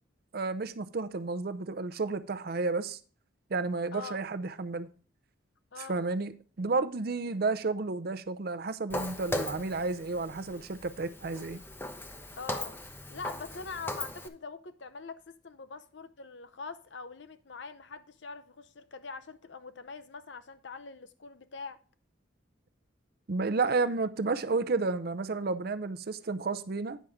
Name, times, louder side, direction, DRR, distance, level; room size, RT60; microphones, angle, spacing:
voice 1, 0.3-3.0 3.5-4.9 5.8-11.6 23.3-27.0, right 3 dB, 50° right, 0.5 m, -31 dB
voice 2, 3.9-4.2 5.7-6.0 12.4-12.7 13.1-21.8, left 4 dB, 70° left, 0.7 m, -43 dB
Walk footsteps, 8.9-14.3, left 1 dB, 10° left, 0.6 m, -38 dB
9.2 x 5.7 x 4.8 m
head